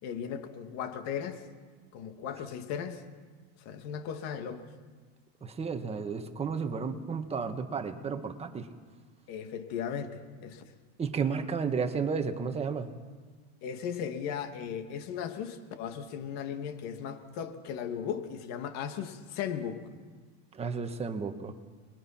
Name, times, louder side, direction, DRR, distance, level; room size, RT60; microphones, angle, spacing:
voice 1, 0.0-1.4 1.9-3.0 3.6-4.7 9.3-10.6 13.6-19.8, left 8 dB, 55° left, 6 dB, 2.3 m, -37 dB
voice 2, 5.4-8.7 11.0-12.9 20.5-21.6, right 5 dB, 20° right, 6 dB, 1.6 m, -32 dB
28.0 x 22.0 x 5.9 m, 1.4 s
supercardioid pair, 145°, 33 cm